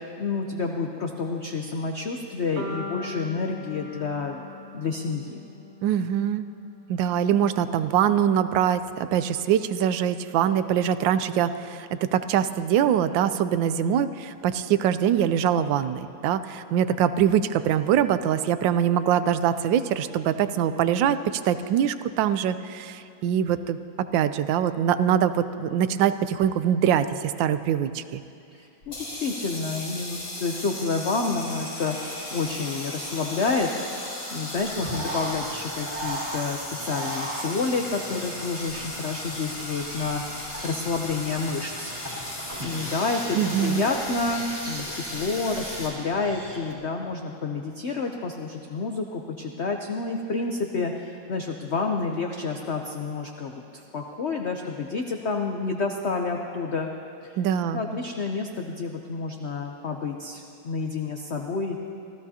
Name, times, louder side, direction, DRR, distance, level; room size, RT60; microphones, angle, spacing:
voice 1, 0.2-5.4 28.5-33.7 34.3-41.9 42.6-56.9 57.2-57.4 57.7-61.8, left 4 dB, 65° left, 2 dB, 0.6 m, -29 dB
sound 1, 2.6-6.7, left 2 dB, 50° right, 0.8 m, -40 dB
voice 2, 5.8-6.5 6.9-23.8 24.1-28.2 43.3-43.8 57.4-57.8, right 9 dB, 75° right, 12 dB, 1.3 m, -23 dB
sound 2, 28.8-45.9, left 1 dB, 85° left, 4.6 m, -36 dB
Bird, 34.7-46.7, right 1 dB, 25° right, 2.2 m, -38 dB
25.5 x 15.5 x 2.8 m, 2.5 s
omnidirectional pair, 2.1 m